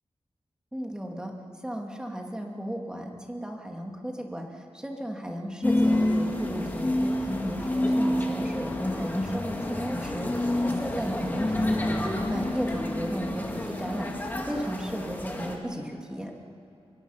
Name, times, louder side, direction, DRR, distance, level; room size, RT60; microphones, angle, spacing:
voice 1, 0.7-1.3 1.6-16.3, equal, 5° right, 1 dB, 2.3 m, -35 dB
sound 1, 5.6-15.6, left 1 dB, 15° left, 2.4 m, -28 dB
24.0 x 22.5 x 5.7 m, 2.8 s
wide cardioid pair, 160°, 10 cm